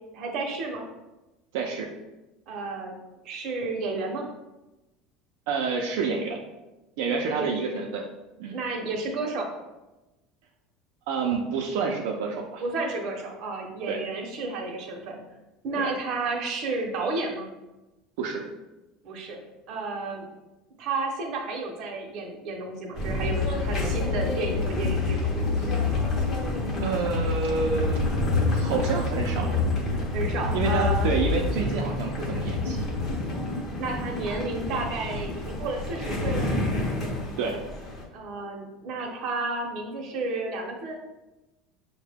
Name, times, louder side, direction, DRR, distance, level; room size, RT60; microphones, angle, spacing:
voice 1, 0.1-0.8 2.5-2.9 3.2-4.2 7.3-7.6 8.5-9.5 12.6-15.2 15.6-17.5 19.0-19.4 19.7-20.3 20.8-25.2 30.1-31.1 33.8-36.5 38.1-41.0, right 3 dB, 45° right, 1 dB, 0.8 m, -31 dB
voice 2, 1.5-1.9 5.5-6.4 7.0-8.0 8.4-8.6 11.1-12.6 13.9-14.0 15.8-15.9 18.2-18.4 25.6-25.7 26.8-28.1 28.5-29.6 30.5-32.9 37.4-37.6, right 4 dB, 75° right, 0 dB, 0.5 m, -28 dB
sound 1, 22.9-38.0, left 3 dB, 25° left, 0.7 m, -27 dB
5.5 x 2.1 x 3.4 m, 1.0 s
cardioid pair, 170°, 0 cm